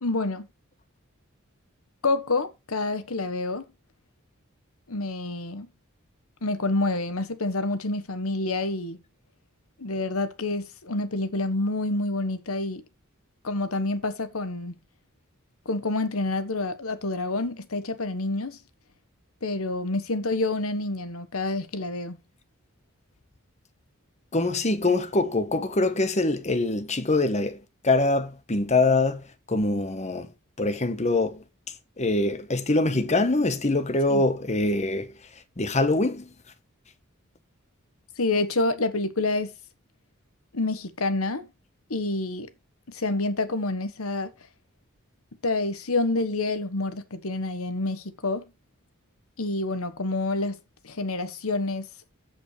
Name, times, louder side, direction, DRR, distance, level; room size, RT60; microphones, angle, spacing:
voice 1, 0.0-0.5 2.0-3.6 4.9-5.7 6.4-9.0 9.8-12.8 13.4-14.7 15.7-18.6 19.4-22.2 34.1-34.2 38.2-39.5 40.5-41.5 41.9-42.5 42.9-44.3 45.4-48.4 49.4-50.6 50.8-51.9, left 2 dB, 90° left, 1.3 m, -28 dB
voice 2, 24.3-27.6 27.8-30.3 30.6-31.4 32.0-35.1 35.6-36.3, left 2 dB, 30° left, 1.2 m, -24 dB
15.0 x 5.3 x 3.3 m
head